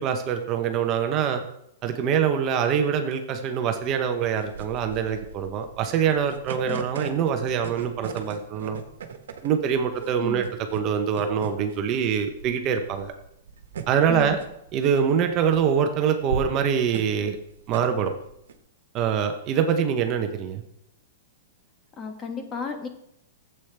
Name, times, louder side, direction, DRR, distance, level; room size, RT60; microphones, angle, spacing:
voice 1, 0.0-1.4 1.8-8.8 9.4-10.4 10.7-13.1 13.9-14.4 14.7-17.4 17.7-18.1 18.9-20.6, right 7 dB, 30° right, 6 dB, 0.8 m, -24 dB
sound 1, 4.4-18.6, right 5 dB, 85° right, 1.2 m, -38 dB
voice 2, 22.0-22.9, left 5 dB, 20° left, 5 dB, 1.3 m, -34 dB
12.0 x 8.0 x 3.4 m, 0.77 s
hypercardioid pair, 155°, 0 cm